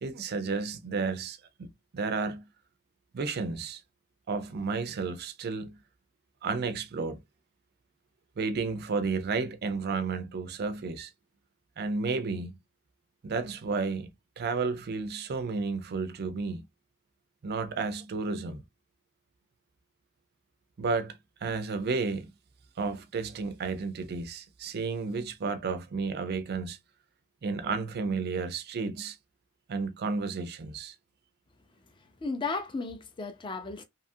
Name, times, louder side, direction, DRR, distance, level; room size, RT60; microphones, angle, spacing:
voice 1, 0.0-2.4 3.1-3.8 4.3-5.8 6.4-7.2 8.4-11.1 11.8-12.6 13.2-14.1 14.4-16.6 17.4-18.6 20.8-22.3 22.8-26.8 27.4-29.2 29.7-30.9, right 4 dB, 45° right, 0.4 m, -32 dB
voice 2, 32.0-33.8, left 4 dB, 20° left, 0.4 m, -35 dB
2.7 x 2.4 x 2.6 m
head